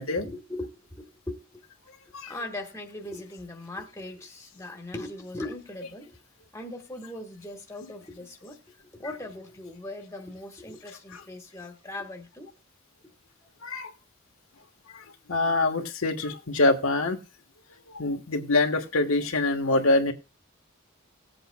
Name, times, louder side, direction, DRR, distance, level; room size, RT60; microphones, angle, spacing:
voice 1, 0.1-1.6 2.3-6.2 6.5-12.5, left 1 dB, 15° left, 1.4 m, -39 dB
voice 2, 13.6-13.9 14.9-17.2 17.7-20.1, left 2 dB, 85° left, 1.3 m, -25 dB
18.5 x 7.9 x 2.3 m
head